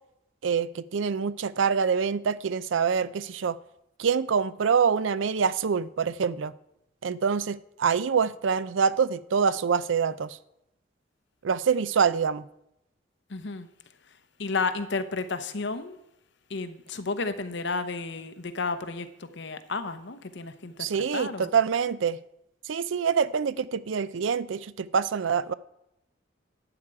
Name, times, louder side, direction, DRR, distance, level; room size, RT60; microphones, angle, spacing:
voice 1, 0.4-3.6 4.0-6.5 7.0-10.4 11.4-12.4 20.8-22.2 22.7-25.5, right 6 dB, 75° right, 0.5 m, -25 dB
voice 2, 13.3-13.7 14.4-16.0 16.5-21.5, left 4 dB, 65° left, 0.9 m, -32 dB
12.0 x 8.8 x 4.8 m
head